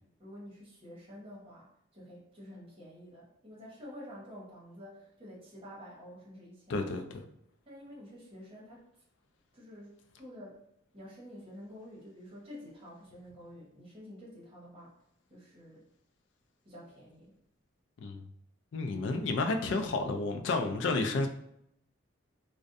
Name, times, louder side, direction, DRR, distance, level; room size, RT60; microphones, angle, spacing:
voice 1, 0.2-6.9 7.6-8.9 9.5-10.6 10.9-14.9 15.3-15.9 16.6-17.3, equal, 30° right, -6 dB, 0.9 m, -49 dB
voice 2, 6.7-7.2 18.0-18.2 18.7-21.3, left 3 dB, 65° left, 6 dB, 0.3 m, -31 dB
2.5 x 2.1 x 2.5 m, 0.76 s
head